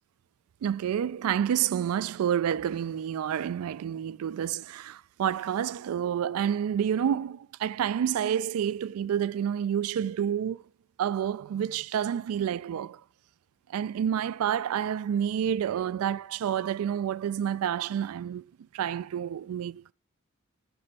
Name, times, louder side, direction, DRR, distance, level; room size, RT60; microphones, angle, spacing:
voice 1, 0.6-10.6 11.0-13.0 13.7-18.4 18.7-19.9, right 9 dB, 80° right, 0.3 m, -29 dB
6.9 x 4.3 x 5.4 m
head